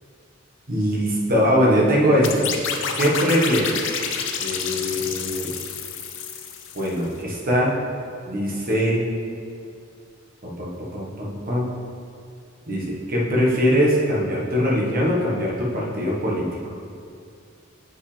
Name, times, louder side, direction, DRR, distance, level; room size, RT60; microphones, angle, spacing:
voice 1, 0.7-2.5 3.0-3.7 4.4-5.5 6.7-7.7 8.3-9.0 10.4-11.7 12.7-16.4, equal, 45° right, -4 dB, 1.4 m, -21 dB
sound 1, 2.2-7.0, left 6 dB, 60° left, 0.6 m, -29 dB
7.6 x 5.9 x 3.3 m, 2.4 s
head